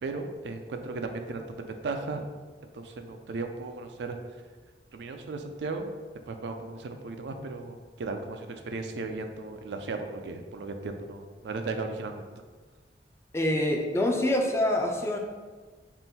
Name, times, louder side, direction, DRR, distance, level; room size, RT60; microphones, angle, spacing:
voice 1, 0.0-2.3 2.7-4.4 4.9-5.9 6.3-12.2, right 3 dB, 75° right, 5 dB, 0.4 m, -36 dB
voice 2, 13.3-15.2, left 1 dB, 15° left, 1 dB, 0.4 m, -25 dB
3.7 x 2.5 x 4.1 m, 1.4 s
head